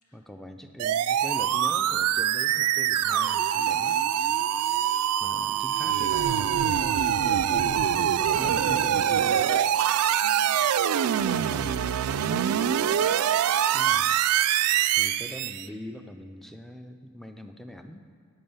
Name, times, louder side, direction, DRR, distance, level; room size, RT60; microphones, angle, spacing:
voice 1, 0.1-4.0 5.2-9.4 11.5-11.8 13.7-14.1 15.0-18.1, equal, ahead, 7 dB, 0.3 m, -42 dB
sound 1, 0.8-15.7, right 9 dB, 85° right, 0.3 m, -24 dB
voice 2, 10.2-10.5 11.0-12.5, left 1 dB, 85° left, -2 dB, 2.1 m, -46 dB
8.9 x 8.6 x 5.5 m, 2.2 s
head